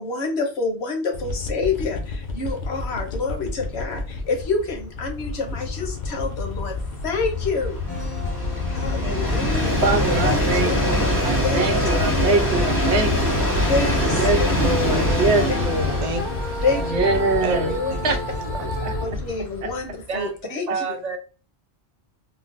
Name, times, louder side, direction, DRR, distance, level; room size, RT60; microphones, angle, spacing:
voice 1, 0.0-6.8 7.0-7.8 8.7-9.8 10.2-10.8 11.3-11.9 13.6-14.5 15.5-15.6 15.8-16.0 16.6-17.2 17.7-18.1 18.6-18.7 19.0-20.9, left 4 dB, 75° left, 1.1 m, -28 dB
sound 1, 1.1-19.3, left 3 dB, 55° left, 0.7 m, -32 dB
Train, 1.7-1.9 2.2-2.3 2.6-20.0, left 1 dB, 20° left, 0.6 m, -25 dB
sound 2, 7.9-19.1, left 1 dB, 25° right, 0.9 m, -34 dB
voice 2, 9.8-11.0 11.2-13.3 14.1-16.0 16.9-17.7 18.0-18.2 18.8-18.9, right 2 dB, 85° right, 1.1 m, -23 dB
voice 3, 10.8-11.3 13.5-14.1 14.6-15.3 16.0-16.2 16.7-16.9 17.4-18.7 20.1-20.3 20.7-21.2, right 4 dB, 50° right, 0.6 m, -32 dB
3.7 x 2.0 x 2.4 m
omnidirectional pair, 1.1 m